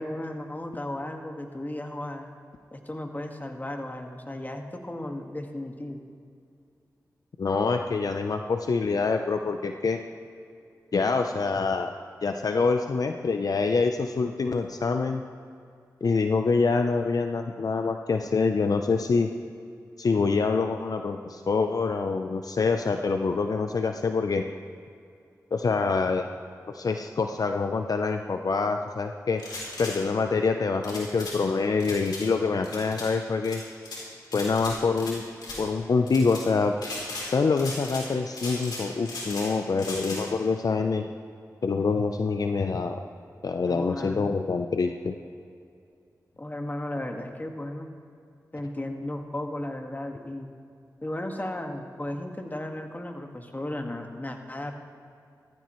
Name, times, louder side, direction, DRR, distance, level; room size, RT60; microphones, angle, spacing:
voice 1, 0.0-2.3 2.7-6.0 43.6-44.2 46.4-47.9 48.5-50.6 51.0-54.7, left 1 dB, 25° left, 3 dB, 1.7 m, -35 dB
voice 2, 7.4-10.0 10.9-11.9 12.2-15.2 16.0-19.3 20.0-24.4 25.5-26.3 26.7-29.4 29.8-33.6 34.3-35.3 35.6-36.7 37.3-41.0 41.6-43.0 43.4-45.1, left 4 dB, 65° left, 6 dB, 0.6 m, -25 dB
sound 1, 29.4-29.9 30.8-31.4 31.8-32.2 32.6-33.1 33.4-34.0 34.3-35.1 35.4-35.6 36.1-36.4 36.8-37.3 37.6-38.1 38.3-39.5 39.8-40.2, left 2 dB, 85° left, 3.5 m, -37 dB
17.0 x 14.5 x 3.1 m, 2.4 s
cardioid pair, 40°, 7 cm